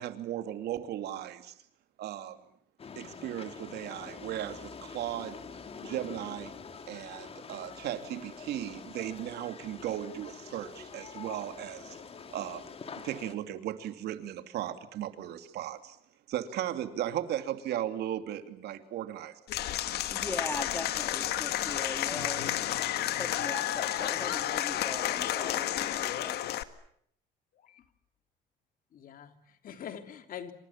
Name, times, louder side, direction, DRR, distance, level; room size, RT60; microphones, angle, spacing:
voice 1, 0.0-1.5 2.0-2.4 3.0-5.4 5.8-6.5 6.9-12.0 12.3-12.7 13.0-16.0 16.3-19.4, right 12 dB, 75° right, 8 dB, 2.8 m, -36 dB
sound 1, 2.8-13.4, left 5 dB, 35° left, 2.8 m, -46 dB
Applause / Crowd, 19.5-26.6, left 12 dB, 70° left, 1.8 m, -31 dB
voice 2, 20.1-26.4, left 2 dB, 15° left, 7 dB, 3.0 m, -40 dB
voice 3, 28.9-30.5, left 8 dB, 55° left, 7 dB, 3.3 m, -44 dB
28.0 x 27.0 x 7.3 m, 0.68 s
cardioid pair, 110°, 17 cm